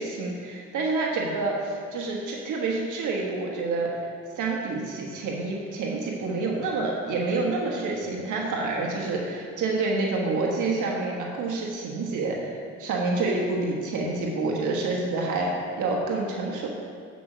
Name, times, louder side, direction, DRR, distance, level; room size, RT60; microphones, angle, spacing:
voice 1, 0.0-3.9 4.3-16.7, right 3 dB, 80° right, -2 dB, 1.4 m, -28 dB
8.5 x 5.3 x 6.1 m, 2.4 s
cardioid pair, 90°, 30 cm